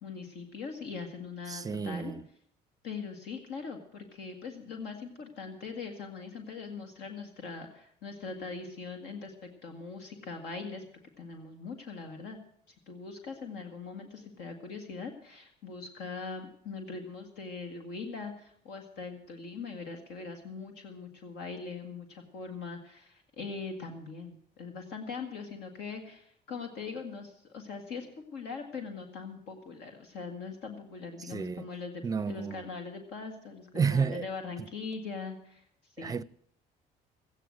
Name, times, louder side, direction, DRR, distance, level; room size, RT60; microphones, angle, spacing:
voice 1, 0.0-2.1 2.8-10.9 11.2-12.4 12.9-35.7 36.0-36.2, left 4 dB, 80° left, 2.0 m, -41 dB
voice 2, 1.5-2.2 31.3-31.7 32.0-32.6 33.7-34.2 36.0-36.2, right 5 dB, 20° right, 0.5 m, -31 dB
15.0 x 9.2 x 7.7 m
cardioid pair, 110°, 17 cm